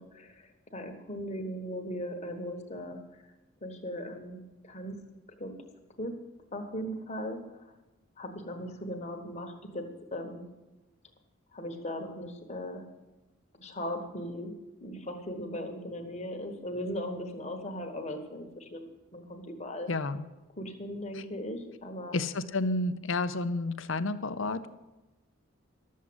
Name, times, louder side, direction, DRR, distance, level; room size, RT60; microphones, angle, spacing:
voice 1, 0.0-3.2 3.6-5.0 5.4-5.5 6.0-6.1 6.5-7.7 8.2-10.4 11.5-12.8 13.5-14.5 14.8-19.9 20.6-22.2, equal, 30° left, 4 dB, 1.3 m, -38 dB
voice 2, 19.9-20.3 21.1-21.2 22.1-24.7, left 2 dB, 65° left, 12 dB, 0.7 m, -31 dB
12.5 x 7.4 x 7.8 m, 1.1 s
head